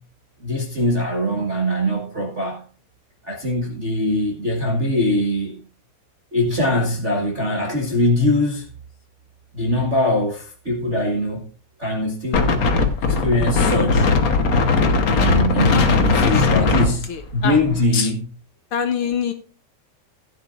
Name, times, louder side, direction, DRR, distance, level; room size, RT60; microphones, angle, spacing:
voice 1, 0.4-2.6 3.2-5.6 6.3-8.6 9.5-11.4 11.8-12.7 13.0-14.1 15.1-17.1 17.3-18.2, left 1 dB, 40° right, 1.0 m, -22 dB
Wind, 12.3-17.8, left 4 dB, 90° left, 0.8 m, -18 dB
voice 2, 16.3-17.6 17.9-18.1 18.7-19.3, left 7 dB, 70° left, 1.3 m, -26 dB
16.0 x 9.6 x 2.5 m
omnidirectional pair, 3.4 m